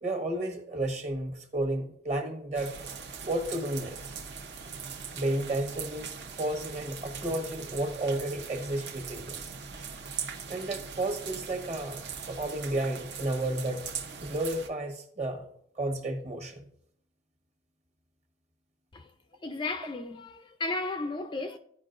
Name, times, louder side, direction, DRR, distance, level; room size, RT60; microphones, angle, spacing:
voice 1, 0.0-2.7 3.2-4.1 5.1-9.5 10.5-13.9 14.2-15.5 15.8-16.6, right 1 dB, 35° right, 1.2 m, -32 dB
sound 1, 2.5-14.7, right 6 dB, 60° right, 0.8 m, -41 dB
voice 2, 19.4-21.6, left 2 dB, 25° left, 0.4 m, -34 dB
14.5 x 5.1 x 2.5 m
head